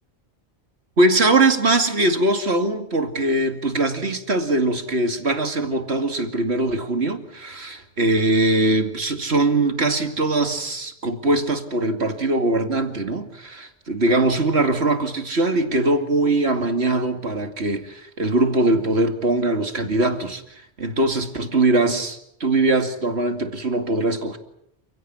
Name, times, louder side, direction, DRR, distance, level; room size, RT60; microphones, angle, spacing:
voice 1, 1.0-24.4, right 2 dB, 70° right, 7 dB, 2.6 m, -21 dB
29.0 x 16.5 x 9.6 m, 0.75 s
omnidirectional pair, 1.1 m